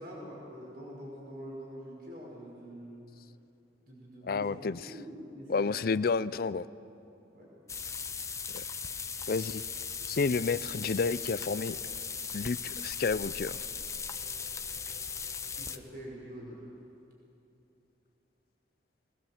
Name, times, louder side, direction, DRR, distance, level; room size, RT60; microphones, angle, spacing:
voice 1, 0.0-3.0 3.9-5.8 7.3-7.5 15.6-16.7, equal, 60° right, -3 dB, 5.7 m, -45 dB
voice 2, 4.2-4.9 5.5-6.7 8.5-8.6 9.3-9.6 10.1-11.8 12.3-13.7, left 4 dB, 55° left, 17 dB, 0.5 m, -30 dB
sound 1, 7.7-15.8, left 6 dB, 15° left, 0.7 m, -38 dB
21.0 x 20.5 x 7.4 m, 2.9 s
head